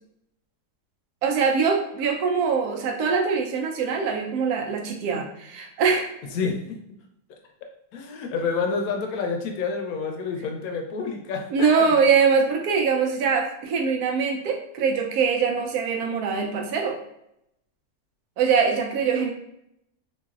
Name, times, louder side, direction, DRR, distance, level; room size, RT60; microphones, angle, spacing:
voice 1, 1.2-6.1 11.5-17.0 18.4-19.3, right 5 dB, 80° right, 2 dB, 1.1 m, -23 dB
voice 2, 6.3-6.8 7.9-11.9, left 5 dB, 75° left, 3 dB, 1.0 m, -28 dB
3.0 x 2.6 x 2.3 m, 0.79 s
omnidirectional pair, 1.6 m